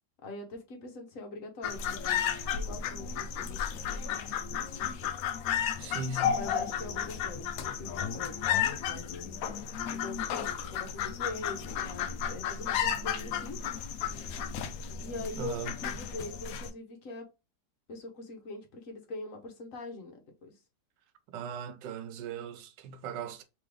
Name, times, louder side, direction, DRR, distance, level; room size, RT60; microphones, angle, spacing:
voice 1, 0.2-5.1 6.3-9.4 9.9-13.6 15.0-17.3 17.9-20.6, left 2 dB, 55° left, 1.2 m, -43 dB
sound 1, 1.6-16.7, left 8 dB, 70° left, 0.8 m, -33 dB
voice 2, 5.8-6.4 15.3-15.8 21.3-23.4, right 5 dB, 90° right, 1.3 m, -38 dB
3.6 x 3.4 x 3.2 m
omnidirectional pair, 1.9 m